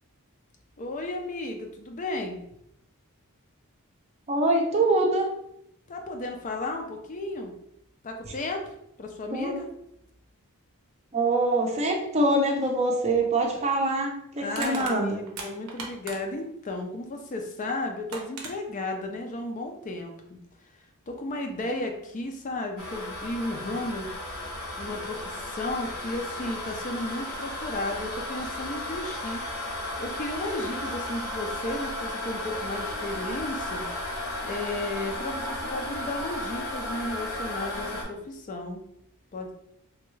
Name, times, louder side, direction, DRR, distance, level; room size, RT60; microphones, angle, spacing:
voice 1, 0.8-2.4 5.9-7.5 8.0-9.7 14.4-20.1 21.1-24.1 24.8-29.4 30.0-33.8 34.4-38.8 39.3-39.5, left 2 dB, 35° left, 3 dB, 0.4 m, -34 dB
voice 2, 4.3-5.3 9.3-9.6 11.1-15.2, right 2 dB, 30° right, 1 dB, 0.5 m, -24 dB
Crushing, 13.2-13.3 14.5-16.5 17.6-17.7 18.1-18.5, right 4 dB, 90° right, 0.7 m, -38 dB
sound 1, 22.8-38.0, left 1 dB, 70° left, 0.9 m, -34 dB
3.4 x 2.3 x 3.1 m, 0.76 s
head